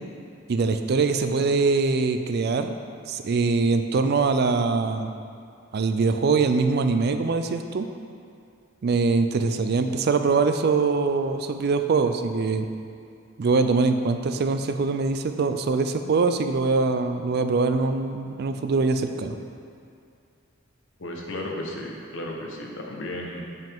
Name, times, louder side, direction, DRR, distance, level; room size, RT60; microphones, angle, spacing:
voice 1, 0.5-2.7 3.1-5.1 5.7-7.9 8.8-12.7 13.4-19.4, right 4 dB, 50° right, 8 dB, 0.4 m, -23 dB
voice 2, 21.0-23.4, left 1 dB, 65° left, 0 dB, 0.9 m, -34 dB
7.6 x 5.4 x 3.6 m, 2.4 s
head